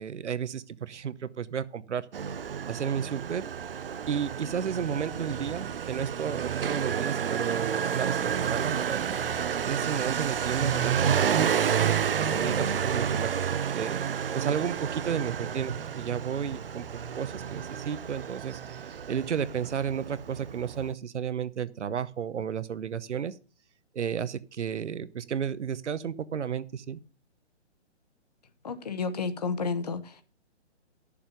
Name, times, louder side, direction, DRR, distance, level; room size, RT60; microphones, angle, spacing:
voice 1, 0.0-2.1 2.7-3.5 4.1-9.2 9.6-14.0 14.3-23.3 23.9-27.0, right 8 dB, 85° right, 0.9 m, -33 dB
Motorcycle, 2.1-20.9, right 8 dB, 55° right, 0.6 m, -30 dB
voice 2, 28.6-30.2, left 4 dB, 35° left, 0.9 m, -31 dB
10.5 x 7.0 x 5.1 m
hypercardioid pair, 175°, 35 cm